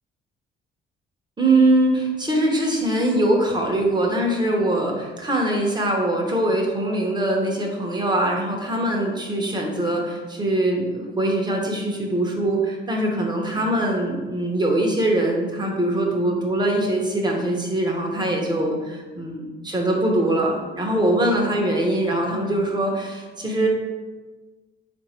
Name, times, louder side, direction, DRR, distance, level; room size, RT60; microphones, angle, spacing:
voice 1, 1.4-23.7, right 1 dB, 20° right, 0 dB, 0.9 m, -22 dB
3.9 x 2.6 x 4.3 m, 1.3 s
cardioid pair, 90°, 20 cm